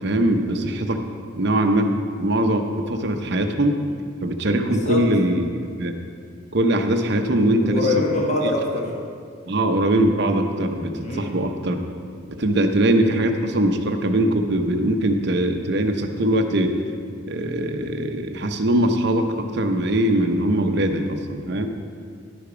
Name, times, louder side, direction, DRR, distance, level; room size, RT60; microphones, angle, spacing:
voice 1, 0.0-1.0 1.4-3.8 4.2-5.5 5.8-6.0 6.5-7.9 8.4-8.5 9.5-11.8 12.3-16.7 17.3-21.7, right 1 dB, 50° right, 5 dB, 0.7 m, -21 dB
voice 2, 4.6-5.1 7.6-8.8 11.0-11.3, left 2 dB, 35° left, -2 dB, 1.1 m, -23 dB
11.0 x 6.8 x 4.9 m, 2.2 s
head